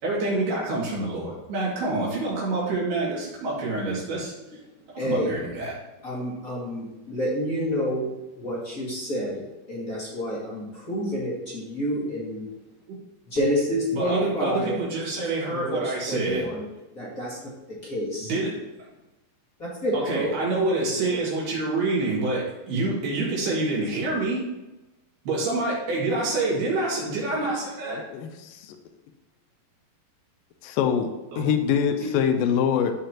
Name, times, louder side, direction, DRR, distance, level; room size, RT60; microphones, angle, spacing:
voice 1, 0.0-4.3 4.9-5.7 13.9-16.4 18.2-18.6 19.9-24.4 25.3-28.0 31.3-31.5 32.0-32.4, right 2 dB, 65° right, -6 dB, 4.3 m, -27 dB
voice 2, 4.9-5.3 6.0-8.1 8.4-9.4 9.7-12.4 13.3-14.7 15.5-16.7 16.9-17.4 17.7-18.3 19.6-20.4, equal, 30° left, -7 dB, 1.6 m, -29 dB
voice 3, 27.9-28.8 30.6-32.9, left 8 dB, 85° left, 6 dB, 2.0 m, -24 dB
14.0 x 5.1 x 3.0 m, 1.0 s
omnidirectional pair, 4.9 m